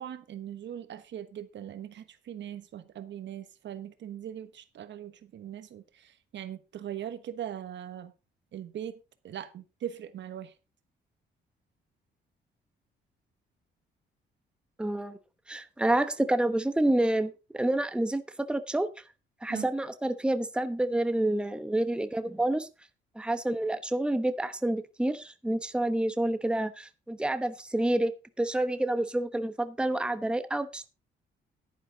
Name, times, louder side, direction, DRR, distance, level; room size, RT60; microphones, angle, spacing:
voice 1, 0.0-8.1 8.5-8.9 9.2-10.5 19.5-19.7, right 10 dB, 65° right, 1.3 m, -40 dB
voice 2, 14.8-15.2 15.5-18.9 19.4-22.7 23.2-28.1 28.4-30.9, right 1 dB, 5° right, 1.0 m, -28 dB
11.0 x 10.0 x 3.9 m
cardioid pair, 90°, 20 cm